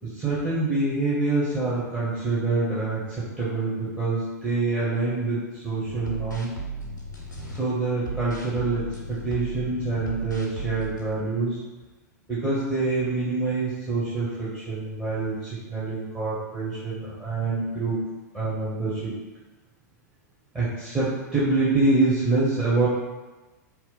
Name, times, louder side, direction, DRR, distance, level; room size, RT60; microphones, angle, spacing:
voice 1, 0.0-6.5 7.5-11.6 12.3-18.0 18.3-19.2 20.5-22.9, right 3 dB, 10° right, -11 dB, 0.8 m, -26 dB
sound 1, 5.8-7.6 8.0-11.1, right 3 dB, 85° left, 0.7 m, -35 dB
2.8 x 2.1 x 3.8 m, 1.2 s
figure-of-eight pair, 95°, 10 cm